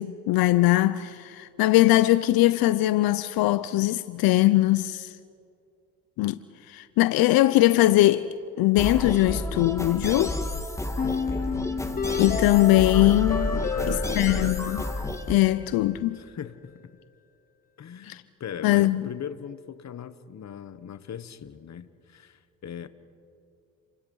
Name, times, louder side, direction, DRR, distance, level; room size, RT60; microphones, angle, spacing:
voice 1, 0.0-5.1 6.2-6.4 6.7-8.3 8.6-10.4 12.1-13.6 13.9-14.8 15.3-16.2 18.0-18.2 18.6-19.1, left 16 dB, 85° left, 0.7 m, -21 dB
sound 1, 8.8-15.4, left 1 dB, 10° left, 1.9 m, -30 dB
sound 2, 11.0-16.0, left 6 dB, 25° left, 0.8 m, -32 dB
voice 2, 13.5-14.6 16.1-17.0 17.8-22.9, left 8 dB, 50° left, 1.4 m, -39 dB
29.5 x 25.0 x 5.5 m
cardioid pair, 85°, 35 cm